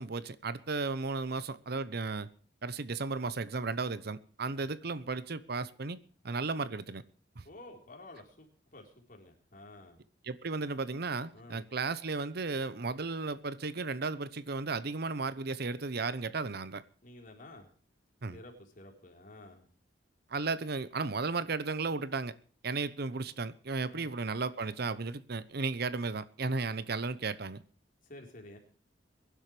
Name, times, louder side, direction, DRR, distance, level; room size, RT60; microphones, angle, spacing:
voice 1, 0.0-2.3 2.6-6.0 6.2-7.0 7.4-7.5 10.2-16.8 18.2-18.4 20.3-22.3 22.6-27.6, right 3 dB, 60° right, 0.9 m, -34 dB
voice 2, 7.4-10.0 11.3-11.6 17.0-17.7 18.3-19.7 23.9-24.1 28.0-28.6, left 1 dB, 50° left, 4.1 m, -51 dB
22.5 x 11.5 x 3.3 m
head